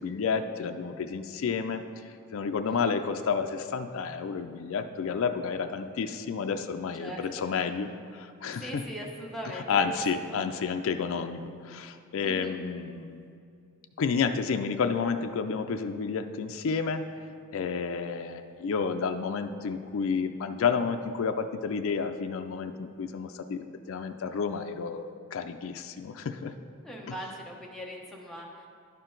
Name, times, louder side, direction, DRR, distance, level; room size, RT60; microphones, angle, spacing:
voice 1, 0.0-1.8 2.3-8.8 9.5-13.3 14.0-17.0 17.5-26.5, left 5 dB, 65° left, 7 dB, 0.4 m, -30 dB
voice 2, 8.6-10.4 12.2-12.6 26.8-28.7, equal, ahead, -3 dB, 0.9 m, -40 dB
11.0 x 4.5 x 3.8 m, 2.4 s
head